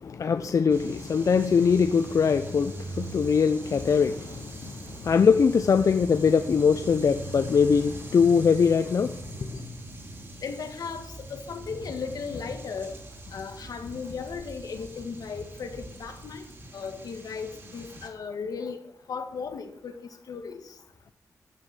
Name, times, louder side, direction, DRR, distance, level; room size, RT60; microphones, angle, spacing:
voice 1, 0.0-9.6, left 6 dB, 60° left, 0.6 m, -22 dB
sound 1, 0.7-18.1, right 1 dB, 40° right, 3.9 m, -42 dB
voice 2, 10.4-12.9 13.3-16.4 16.7-18.8 19.1-20.0 20.3-20.6, left 5 dB, 85° left, 1.8 m, -36 dB
13.5 x 6.3 x 7.7 m
cardioid pair, 85°, 6 cm